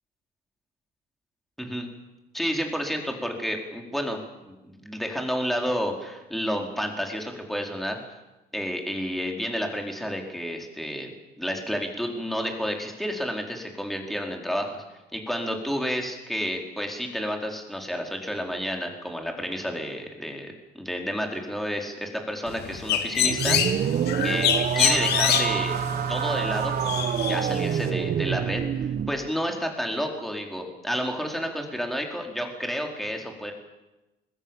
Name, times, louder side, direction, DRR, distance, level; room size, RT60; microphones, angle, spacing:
voice 1, 1.6-1.9 2.3-8.0 8.5-11.1 11.4-14.8 15.1-23.9 24.2-24.5 24.7-25.8 26.1-27.0 27.3-33.5, equal, ahead, 2 dB, 4.4 m, -30 dB
Bird, 22.5-27.9, left 9 dB, 75° left, 2.5 m, -26 dB
sound 1, 23.2-29.2, right 8 dB, 55° right, 1.2 m, -27 dB
26.0 x 21.5 x 7.3 m, 1.0 s
cardioid pair, 110°, 17 cm